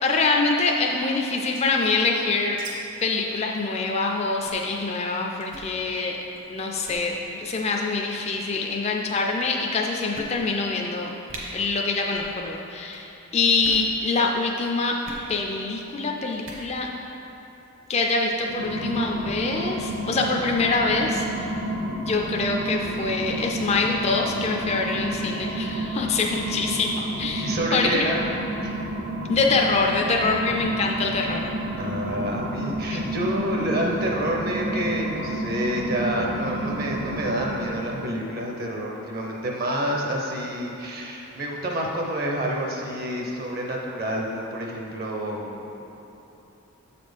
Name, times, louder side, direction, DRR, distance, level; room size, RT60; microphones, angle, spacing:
voice 1, 0.0-2.6 3.0-6.2 6.5-11.1 11.5-15.0 15.3-16.9 17.9-21.5 22.0-28.1 29.3-31.5 32.9-33.0, left 3 dB, 30° left, 0 dB, 0.4 m, -25 dB
sound 1, 1.3-2.7 3.0-3.1 3.3-3.5 3.9-4.0 4.4-4.7 5.4-5.7 6.3-6.5 6.8-7.0 7.9-8.3 9.1-9.2 9.6-9.7 10.1-10.7 11.0-11.1 11.3-11.4 12.1-12.4 12.6-13.0 13.5-13.9 15.0-15.3 16.3-16.7, right 2 dB, 60° right, 1.2 m, -41 dB
sound 2, 18.4-38.1, right 1 dB, 80° right, 0.8 m, -30 dB
voice 2, 27.4-28.2 28.6-28.7 31.8-45.7, equal, 45° right, -1 dB, 0.7 m, -28 dB
7.5 x 4.2 x 5.1 m, 2.9 s
head